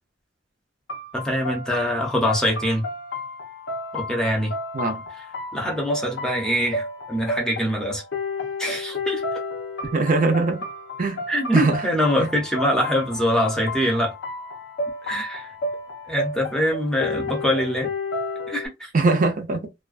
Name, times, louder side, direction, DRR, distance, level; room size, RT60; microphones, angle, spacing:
sound 1, 0.9-18.7, left 2 dB, 70° left, 0.6 m, -32 dB
voice 1, 1.1-2.9 3.9-4.5 5.5-8.0 8.6-9.2 11.3-14.1 15.0-15.5 16.1-17.9 18.5-18.9, equal, 5° left, 0.7 m, -24 dB
voice 2, 9.9-10.6 11.0-11.2 11.5-11.8 12.2-12.3 18.9-19.6, right 3 dB, 45° right, 0.5 m, -21 dB
2.4 x 2.2 x 2.4 m
head